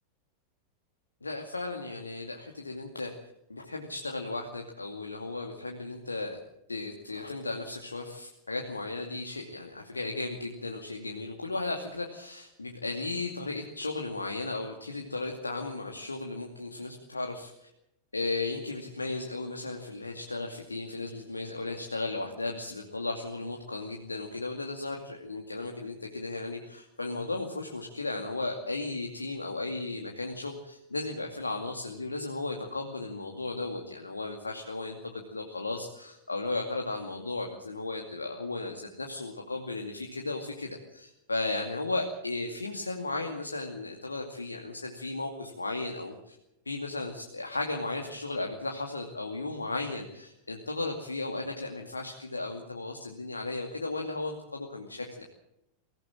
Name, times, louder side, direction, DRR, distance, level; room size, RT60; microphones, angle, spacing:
voice 1, 1.2-3.1 3.5-6.4 6.7-17.7 18.1-46.3 46.7-55.2, left 2 dB, 80° left, 2 dB, 2.4 m, -35 dB
23.5 x 16.5 x 7.6 m, 0.84 s
figure-of-eight pair, 90°, 0 cm